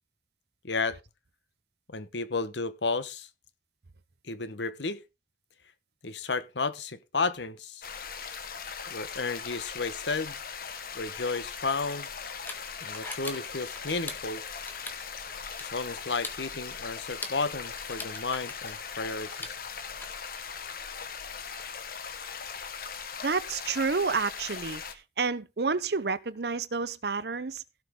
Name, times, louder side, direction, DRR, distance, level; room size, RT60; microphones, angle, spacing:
voice 1, 0.6-1.0 1.9-3.3 4.2-5.0 6.0-7.8 8.9-10.4 10.9-12.1 12.8-14.4 15.6-19.5, left 4 dB, 80° left, 1.2 m, -32 dB
sound 1, 7.8-24.9, left 6 dB, 55° left, 1.4 m, -39 dB
sound 2, 11.5-20.0, left 2 dB, 10° left, 1.8 m, -44 dB
voice 2, 23.2-27.6, right 4 dB, 65° right, 0.8 m, -30 dB
16.5 x 6.1 x 3.7 m
head